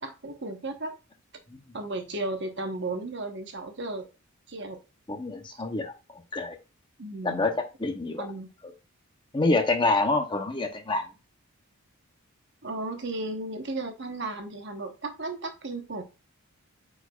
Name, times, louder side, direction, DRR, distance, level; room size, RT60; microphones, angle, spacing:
voice 1, 0.0-0.9 1.7-4.1 4.5-4.8 7.0-7.5 8.2-8.5 12.6-16.0, right 2 dB, 50° right, 6 dB, 1.0 m, -34 dB
voice 2, 5.1-6.6 7.2-8.3 8.6-8.7 9.3-11.1, left 2 dB, 20° left, 6 dB, 0.8 m, -27 dB
8.8 x 4.6 x 2.3 m, 0.29 s
head